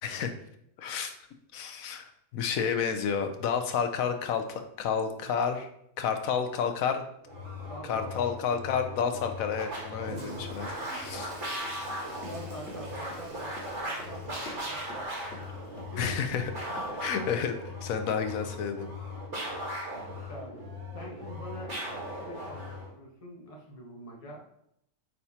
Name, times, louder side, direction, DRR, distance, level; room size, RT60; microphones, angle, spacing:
voice 1, 0.0-0.3 0.8-1.1 1.5-5.7 6.0-7.0 7.8-11.3 16.0-18.9, left 7 dB, 75° left, 7 dB, 1.2 m, -31 dB
sound 1, 7.2-22.9, left 1 dB, 55° right, 2.4 m, -38 dB
voice 2, 7.7-8.1 12.3-15.3 15.9-16.1 20.3-20.7 20.9-21.8 22.2-24.4, equal, 25° left, -2 dB, 1.3 m, -45 dB
Toilet flush, 9.9-17.4, right 2 dB, 75° right, 1.7 m, -48 dB
Run, 12.2-15.9 16.2-16.4 16.7-17.1 17.4-17.5, left 2 dB, 55° left, 2.2 m, -47 dB
8.7 x 4.9 x 2.9 m, 0.75 s
omnidirectional pair, 1.5 m